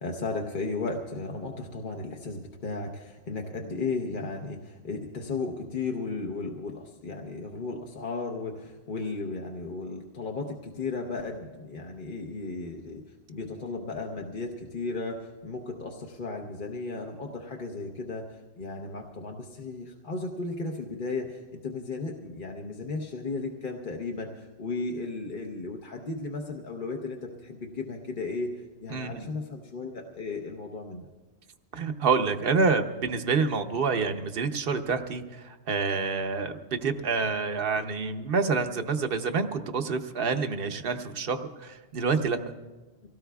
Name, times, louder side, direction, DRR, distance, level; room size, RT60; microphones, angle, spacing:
voice 1, 0.0-13.0 13.3-28.5 28.8-31.1, left 3 dB, 50° left, 1 dB, 1.1 m, -35 dB
voice 2, 28.9-29.3 31.7-42.4, right 4 dB, 60° right, 8 dB, 1.0 m, -27 dB
25.5 x 17.5 x 2.3 m, 1.2 s
omnidirectional pair, 1.1 m